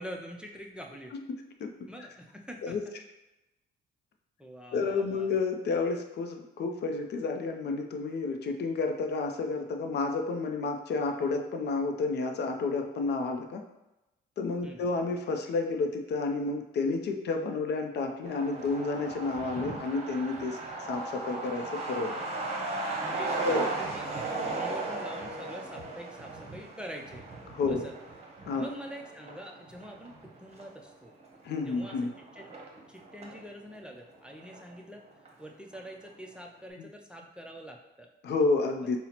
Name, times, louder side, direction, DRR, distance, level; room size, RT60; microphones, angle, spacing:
voice 1, 0.0-1.1 1.9-2.8 4.4-5.3 14.6-14.8 23.0-27.3 27.7-27.9 28.6-31.1 31.7-32.0 32.3-32.5 32.9-35.0 35.4-38.1, equal, 5° right, 1 dB, 0.4 m, -45 dB
voice 2, 1.1-1.7 2.6-2.8 4.7-13.6 14.4-20.6 20.9-22.2 23.4-23.6 24.4-24.5 27.5-27.9 28.5-28.6 31.4-32.1 36.8-36.9 38.2-39.0, left 3 dB, 60° left, 5 dB, 0.4 m, -30 dB
Truck, 18.2-33.4 33.7-33.8 34.1-35.0 35.3-35.4 35.7-36.1, right 3 dB, 35° right, 0.8 m, -37 dB
5.5 x 2.0 x 2.8 m, 0.97 s
cardioid pair, 90°, 20 cm